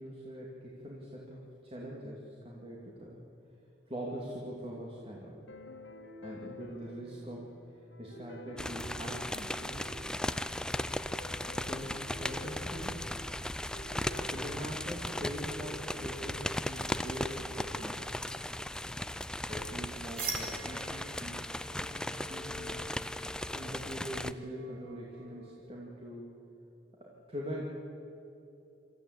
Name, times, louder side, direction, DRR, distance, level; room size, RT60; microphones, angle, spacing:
voice 1, 0.0-3.2 3.9-5.3 6.2-7.6 8.0-10.0 11.6-13.1 14.3-18.1 19.4-22.8 23.5-26.3 27.0-27.6, equal, 30° right, -3 dB, 2.6 m, -43 dB
sound 1, 5.5-17.5, left 1 dB, 75° left, 1.9 m, -50 dB
sound 2, 8.6-24.3, left 1 dB, 5° left, 0.4 m, -37 dB
sound 3, 20.2-25.7, right 3 dB, 50° right, 3.3 m, -45 dB
26.5 x 14.5 x 8.2 m, 2.9 s
head